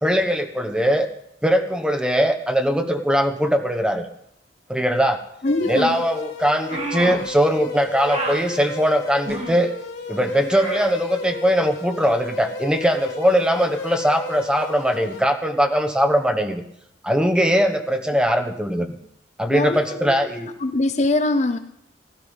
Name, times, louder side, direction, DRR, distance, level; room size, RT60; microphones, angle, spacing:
voice 1, 0.0-1.1 1.4-4.1 4.7-5.2 5.7-9.7 10.1-16.6 17.0-19.0 19.4-20.5, equal, 5° right, 6 dB, 1.1 m, -20 dB
sound 1, 5.4-15.2, left 2 dB, 90° left, 3.2 m, -33 dB
voice 2, 5.4-6.0 19.5-21.6, left 2 dB, 40° left, 10 dB, 0.6 m, -23 dB
sound 2, 6.7-7.3 8.1-8.4 9.2-9.6 10.5-10.9, right 2 dB, 35° right, 2.1 m, -29 dB
16.0 x 12.0 x 5.5 m, 0.76 s
head